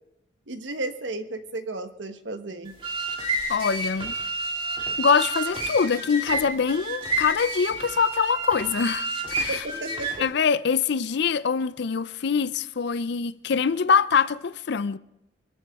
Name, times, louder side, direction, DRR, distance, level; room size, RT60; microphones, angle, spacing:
voice 1, 0.5-2.8 9.5-10.3, right 2 dB, 70° right, 1.3 m, -34 dB
sound 1, 2.7-10.3, right 2 dB, 30° right, 2.5 m, -30 dB
voice 2, 3.5-4.2 5.0-9.1 9.4-9.5 10.2-15.0, left 6 dB, 60° left, 0.5 m, -24 dB
23.5 x 14.5 x 3.6 m
head